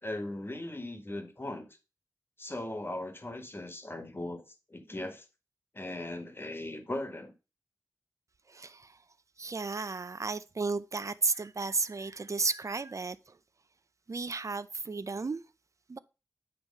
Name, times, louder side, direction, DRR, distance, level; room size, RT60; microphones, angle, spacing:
voice 1, 0.0-1.7 2.4-4.4 4.7-5.2 5.7-7.3, left 1 dB, 30° left, 1.4 m, -38 dB
voice 2, 8.5-8.9 9.4-13.2 14.1-15.4 15.9-16.0, right 4 dB, 45° right, 0.5 m, -33 dB
8.5 x 3.2 x 5.3 m
cardioid pair, 50°, 7 cm